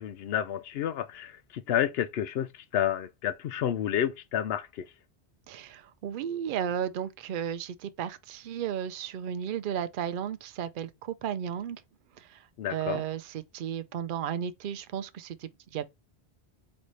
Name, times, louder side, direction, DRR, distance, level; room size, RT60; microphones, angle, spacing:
voice 1, 0.0-4.9 12.6-13.0, left 10 dB, 70° left, 0.8 m, -30 dB
voice 2, 5.5-11.8 12.2-12.4 12.7-15.9, right 9 dB, 60° right, 0.6 m, -34 dB
4.0 x 3.2 x 3.1 m
omnidirectional pair, 1.1 m